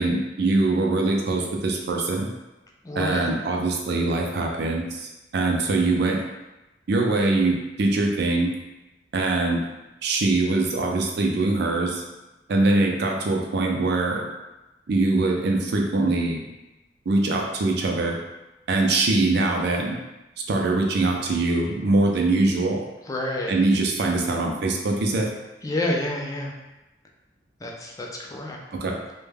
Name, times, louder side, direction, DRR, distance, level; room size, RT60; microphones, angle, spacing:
voice 1, 0.0-2.3 3.0-6.2 6.9-8.5 9.1-9.6 10.0-12.0 12.5-14.3 14.9-16.4 17.1-18.2 18.7-20.0 20.5-22.8 23.5-25.3 28.8-29.0, right 2 dB, 65° right, 1 dB, 0.4 m, -23 dB
voice 2, 2.8-3.3 23.0-23.5 25.6-26.5 27.6-28.6, left 1 dB, 20° left, -1 dB, 0.3 m, -28 dB
2.2 x 2.1 x 3.2 m, 1.0 s
head